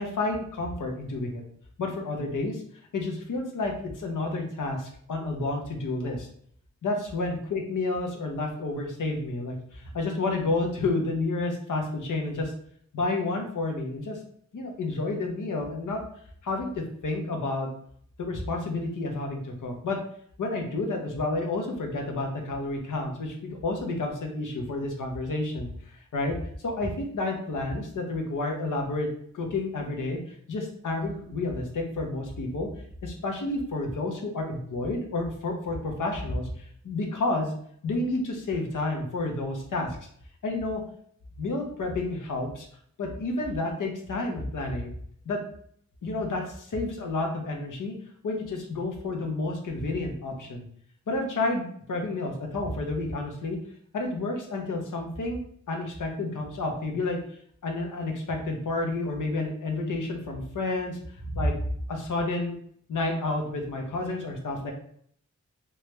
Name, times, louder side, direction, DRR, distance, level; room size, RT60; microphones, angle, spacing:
voice 1, 0.0-1.4 1.8-2.6 2.9-6.3 6.8-12.5 12.9-14.2 14.5-16.0 16.4-17.7 18.2-20.0 20.4-26.4 26.6-29.1 29.3-32.7 33.0-36.5 36.8-37.5 37.8-40.0 40.4-40.8 41.4-42.7 43.0-44.9 45.3-45.4 46.0-47.9 48.2-50.7 51.1-53.6 53.9-55.4 55.7-57.2 57.6-61.0 61.3-61.6 61.9-62.6 62.9-64.7, left 2 dB, 85° left, 2 dB, 0.8 m, -30 dB
3.1 x 2.3 x 3.1 m, 0.63 s
wide cardioid pair, 130°, 30 cm